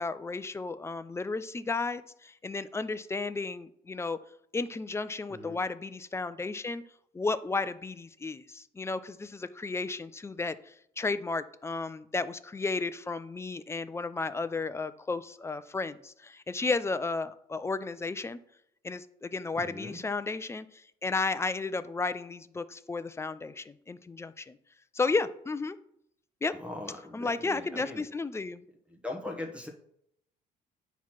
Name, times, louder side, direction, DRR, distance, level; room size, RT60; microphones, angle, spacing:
voice 1, 0.0-4.2 4.5-6.8 7.1-18.4 18.8-24.6 24.9-25.8 26.4-26.5 27.1-28.6, left 3 dB, 15° left, 13 dB, 0.4 m, -33 dB
voice 2, 19.6-20.0 26.5-28.0 28.9-29.7, left 2 dB, 5° right, 2 dB, 1.0 m, -40 dB
9.2 x 3.1 x 5.8 m, 0.74 s
cardioid pair, 110°, 17 cm